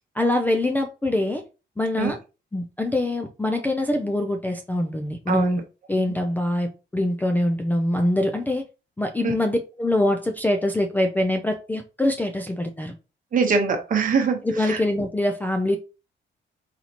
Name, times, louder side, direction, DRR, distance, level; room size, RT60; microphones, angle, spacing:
voice 1, 0.2-1.4 1.8-2.2 2.5-5.6 5.9-8.6 9.0-12.9 14.4-15.8, left 1 dB, 10° left, 0.4 m, -24 dB
voice 2, 5.3-5.6 9.2-9.3 13.3-14.8, right 5 dB, 45° right, 1.1 m, -23 dB
4.2 x 4.1 x 2.9 m
cardioid pair, 165°, 20 cm